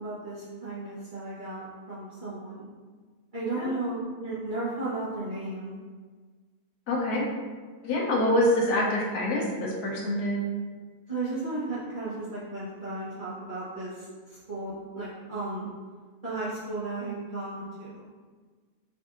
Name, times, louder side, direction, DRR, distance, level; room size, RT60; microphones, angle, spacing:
voice 1, 0.0-2.7 3.3-5.8 11.1-15.7 16.2-18.0, right 2 dB, 35° right, -12 dB, 1.0 m, -34 dB
voice 2, 6.9-7.2 7.8-10.4, left 1 dB, 75° left, -3 dB, 1.2 m, -26 dB
5.1 x 2.6 x 2.5 m, 1.5 s
omnidirectional pair, 1.7 m